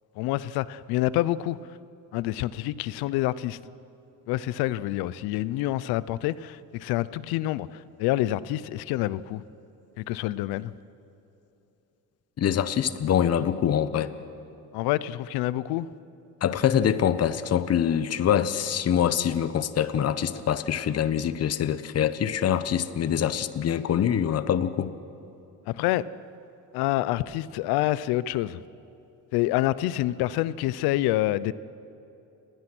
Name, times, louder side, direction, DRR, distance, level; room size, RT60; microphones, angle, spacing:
voice 1, 0.2-1.6 2.1-3.6 4.3-9.4 10.0-10.7 14.7-15.9 25.7-26.0 26.7-28.6 29.3-31.5, left 15 dB, 90° left, 18 dB, 0.8 m, -27 dB
voice 2, 12.4-14.1 16.4-24.9, left 9 dB, 40° left, 13 dB, 1.1 m, -24 dB
29.5 x 20.0 x 6.2 m, 2.8 s
cardioid pair, 115°, 36 cm